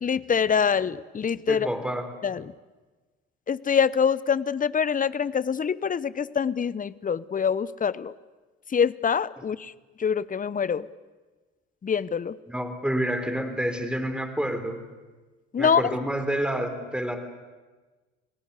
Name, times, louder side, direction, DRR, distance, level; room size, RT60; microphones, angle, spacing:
voice 1, 0.0-1.7 2.2-2.5 3.5-8.1 8.7-9.7 10.0-10.9 11.8-12.4 15.5-15.9, left 7 dB, 25° left, 19 dB, 0.8 m, -25 dB
voice 2, 1.5-2.1 12.5-14.8 15.6-17.2, equal, 5° right, 8 dB, 3.8 m, -28 dB
29.5 x 18.5 x 8.3 m, 1.3 s
hypercardioid pair, 60°, 34 cm